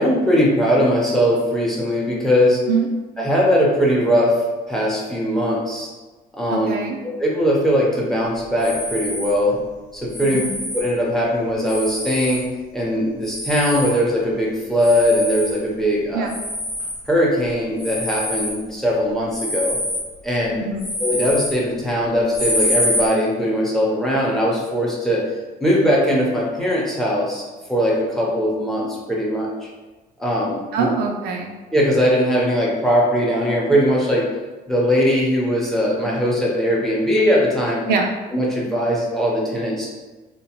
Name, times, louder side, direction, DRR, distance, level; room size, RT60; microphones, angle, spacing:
voice 1, 0.0-2.6 3.2-4.3 4.7-5.9 6.3-6.7 7.0-9.6 9.9-10.4 10.7-12.5 12.7-16.3 17.1-19.8 20.2-20.6 21.0-25.2 25.6-29.5 30.2-30.9 31.7-34.3 34.7-37.8 38.3-39.9, equal, ahead, -4 dB, 0.7 m, -20 dB
voice 2, 6.5-7.0 10.2-10.6 16.1-16.4 20.6-20.9 30.7-31.6 37.9-38.2, right 5 dB, 70° right, 2 dB, 0.4 m, -23 dB
sound 1, 8.6-9.3 10.1-10.9 11.6-12.4 13.2-14.0 14.8-15.6 16.3-17.0 17.8-18.6 19.3-20.1 20.8-21.6 22.3-23.1, left 1 dB, 80° left, 1.2 m, -26 dB
2.9 x 2.0 x 2.9 m, 1.2 s
cardioid pair, 110°, 17 cm